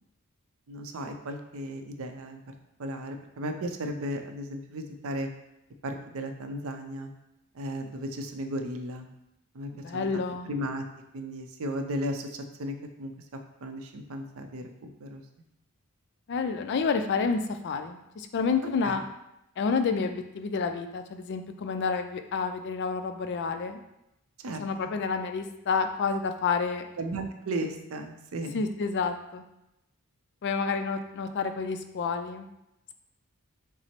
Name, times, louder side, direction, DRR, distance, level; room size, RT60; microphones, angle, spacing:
voice 1, 0.7-2.4 2.8-5.3 5.8-7.1 7.5-9.1 9.5-10.2 10.5-10.9 11.1-13.1 13.6-15.2 18.8-19.0 24.4-25.0 27.0-28.6, right 1 dB, 65° right, 6 dB, 0.5 m, -35 dB
voice 2, 9.7-10.5 16.3-19.0 19.6-23.8 24.6-26.8 28.5-29.4 30.4-32.5, left 5 dB, 50° left, 7 dB, 0.4 m, -29 dB
5.9 x 2.0 x 4.3 m, 0.87 s
head